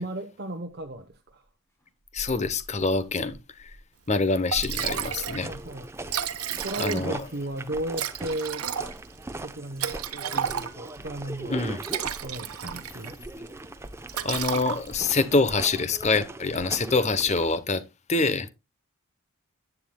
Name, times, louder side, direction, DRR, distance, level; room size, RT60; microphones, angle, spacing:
voice 1, 0.0-1.5 5.4-5.9 6.6-8.7 9.4-11.6 12.2-13.2, right 1 dB, 45° right, 1.0 m, -35 dB
sound 1, 0.7-1.3 1.8-3.9 4.2-4.3 4.5-6.0, right 1 dB, 15° left, 3.1 m, -44 dB
voice 2, 2.1-3.7 4.1-5.5 6.8-7.2 11.5-11.8 14.2-17.8 18.1-18.5, left 3 dB, 30° left, 0.8 m, -25 dB
Liquid, 4.1-4.2 4.5-5.4 5.7-5.8 6.0-7.3 7.9-11.0 11.6-13.2 13.5-13.7 14.1-15.1, right 9 dB, 90° right, 1.0 m, -32 dB
sound 2, 4.8-17.6, right 2 dB, 10° right, 0.7 m, -40 dB
11.0 x 9.4 x 2.2 m
head